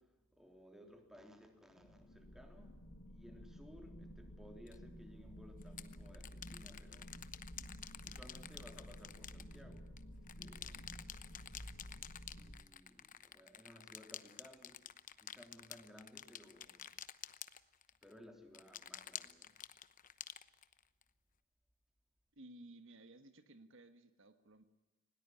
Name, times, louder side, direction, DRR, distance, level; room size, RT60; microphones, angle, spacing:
voice 1, 0.0-2.8 3.1-7.1 8.0-11.2 12.3-14.9 15.2-17.0 18.0-19.6, left 1 dB, ahead, 4 dB, 3.4 m, -59 dB
sound 1, 1.7-12.6, equal, 85° left, 2.2 m, -53 dB
sound 2, 4.7-4.8 5.6-10.0 10.3-18.1 18.5-21.0, left 10 dB, 40° left, 1.0 m, -50 dB
voice 2, 22.3-24.6, right 1 dB, 65° right, 9 dB, 1.5 m, -57 dB
20.5 x 18.5 x 9.9 m, 1.2 s
head